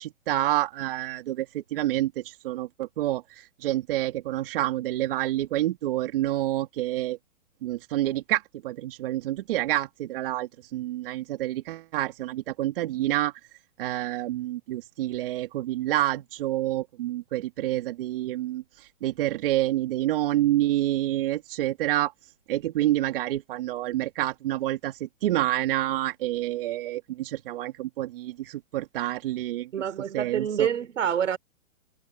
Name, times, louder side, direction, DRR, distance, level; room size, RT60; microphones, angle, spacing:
voice 1, 0.0-7.2 7.6-13.3 13.8-22.1 22.5-29.7 30.1-30.7, right 15 dB, 45° right, 2.8 m, -28 dB
voice 2, 29.7-31.4, right 8 dB, 70° right, 4.8 m, -27 dB
hypercardioid pair, 155°, 39 cm